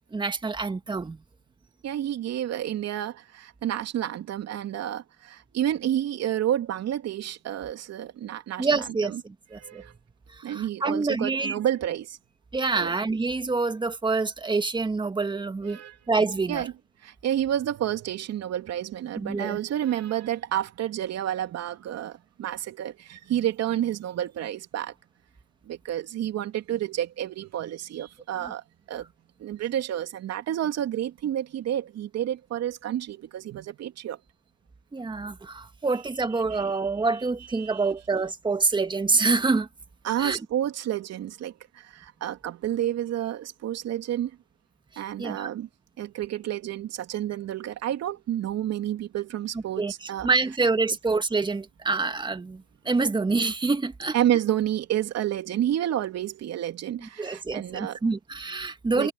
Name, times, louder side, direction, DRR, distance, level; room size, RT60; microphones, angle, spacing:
voice 1, 0.1-1.2 8.6-9.8 10.5-11.6 12.5-15.8 16.1-16.7 19.2-19.6 28.3-28.5 34.9-39.7 40.2-40.4 45.2-45.5 49.8-49.9 50.2-54.1 57.0-59.1, right 3 dB, 10° right, 1.9 m, -26 dB
voice 2, 1.8-9.2 9.6-9.9 10.4-12.2 12.7-12.9 15.6-15.9 16.5-16.7 17.0-24.9 25.6-28.6 28.9-29.1 29.4-34.2 36.5-36.8 37.5-37.9 40.0-44.3 45.0-45.7 46.0-50.3 54.1-58.0 58.9-59.1, right 11 dB, 35° right, 3.2 m, -30 dB
supercardioid pair, 120°, 46 cm